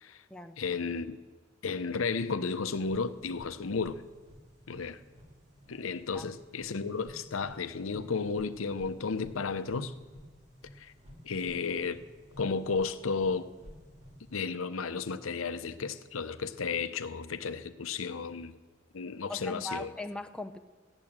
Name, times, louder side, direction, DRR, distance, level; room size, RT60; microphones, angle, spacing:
voice 1, 0.6-1.2 1.6-4.0 4.7-5.0 5.7-9.9 10.8-10.9 11.2-12.0 12.4-13.5 14.3-18.5 18.9-19.9, left 4 dB, 80° left, 0.7 m, -33 dB
sound 1, 2.7-14.3, equal, 35° right, 2.4 m, -53 dB
voice 2, 19.3-20.6, left 2 dB, 5° left, 0.6 m, -39 dB
15.0 x 10.5 x 7.4 m
head